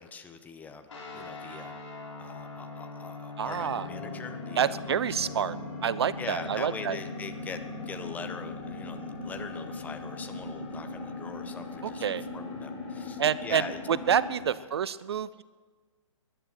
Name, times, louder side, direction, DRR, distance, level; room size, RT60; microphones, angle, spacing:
voice 1, 0.0-1.8 2.2-5.4 6.2-13.8 14.4-14.7, left 5 dB, 10° left, 7 dB, 0.9 m, -42 dB
sound 1, 0.9-11.2, left 3 dB, 65° left, 5.0 m, -44 dB
voice 2, 3.4-3.9 4.6-5.6 5.8-7.0 12.0-12.2 13.2-13.6 14.1-15.4, right 8 dB, 50° right, 18 dB, 0.4 m, -28 dB
sound 2, 3.5-14.4, left 2 dB, 25° left, 6.6 m, -39 dB
19.5 x 11.0 x 6.3 m, 1.4 s
figure-of-eight pair, 125°, 17 cm